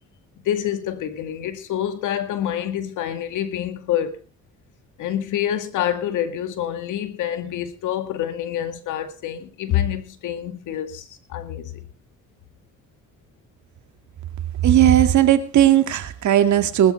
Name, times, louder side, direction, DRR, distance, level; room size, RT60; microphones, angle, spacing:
voice 1, 0.5-4.2 5.0-11.8, left 10 dB, 85° left, 2.1 m, -27 dB
voice 2, 14.6-16.9, right 11 dB, 70° right, 2.1 m, -16 dB
20.0 x 13.0 x 3.3 m
cardioid pair, 90°, 30 cm